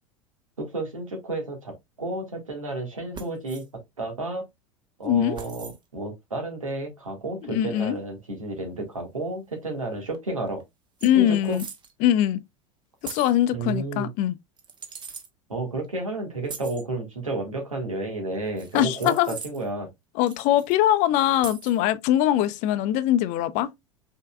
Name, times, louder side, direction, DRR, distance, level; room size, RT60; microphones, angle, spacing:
voice 1, 0.6-3.6 4.0-4.5 5.0-10.6 11.1-11.6 13.5-14.1 15.5-19.9, right 2 dB, 85° right, 1.7 m, -31 dB
sound 1, 3.1-3.7 5.3-5.8 7.8-7.9 10.1-10.2 10.5-10.6 11.0-11.9 13.0-13.4 14.6-15.3 16.4-16.8 18.6-19.7 20.2-20.8 21.4-21.8, right 5 dB, 25° right, 1.0 m, -41 dB
voice 2, 5.1-5.4 7.5-8.0 11.0-11.6 12.0-12.4 13.0-14.3 18.7-19.4 20.2-23.7, left 12 dB, 50° left, 0.6 m, -22 dB
5.4 x 3.6 x 2.3 m
figure-of-eight pair, 80°, 17 cm